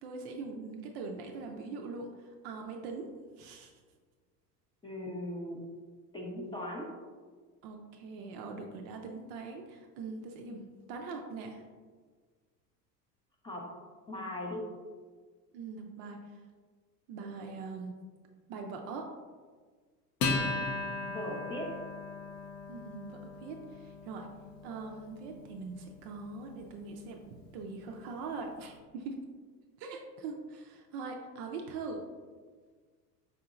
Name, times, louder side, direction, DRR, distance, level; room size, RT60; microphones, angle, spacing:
voice 1, 0.0-3.1 3.4-3.7 7.6-11.6 15.5-16.4 17.1-17.9 18.5-19.1 22.7-24.3 24.6-29.2 29.8-32.1, right 4 dB, 45° right, 2 dB, 0.4 m, -42 dB
voice 2, 4.8-5.6 6.1-6.9 13.4-13.7 14.1-14.6 21.1-21.7, left 1 dB, 10° left, -3 dB, 0.5 m, -38 dB
Acoustic guitar, 20.2-27.0, left 3 dB, 80° left, 0.9 m, -38 dB
5.0 x 2.7 x 2.4 m, 1.5 s
hypercardioid pair, 85°, 49 cm